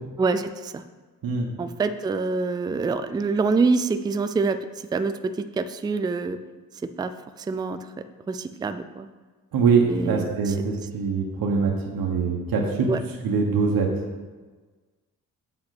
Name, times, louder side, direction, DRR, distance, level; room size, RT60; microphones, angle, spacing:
voice 1, 0.2-0.8 1.6-6.4 7.0-7.1 7.4-7.8 8.3-9.1 9.9-10.5 12.9-13.0, right 4 dB, 15° right, 10 dB, 0.3 m, -26 dB
voice 2, 9.5-12.9 13.2-13.9, right 5 dB, 80° right, 1 dB, 1.3 m, -23 dB
8.0 x 5.8 x 5.9 m, 1.3 s
cardioid pair, 130°, 35 cm